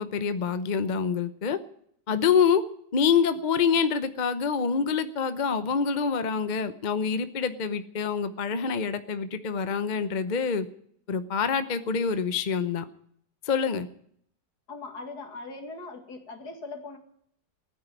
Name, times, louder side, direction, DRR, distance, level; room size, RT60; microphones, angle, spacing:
voice 1, 0.0-1.6 2.1-2.6 2.9-10.7 11.1-12.8 13.4-13.9, left 6 dB, 40° left, 11 dB, 0.6 m, -26 dB
voice 2, 14.7-17.0, left 3 dB, 65° left, 5 dB, 2.7 m, -40 dB
15.5 x 9.5 x 9.8 m, 0.67 s
omnidirectional pair, 1.9 m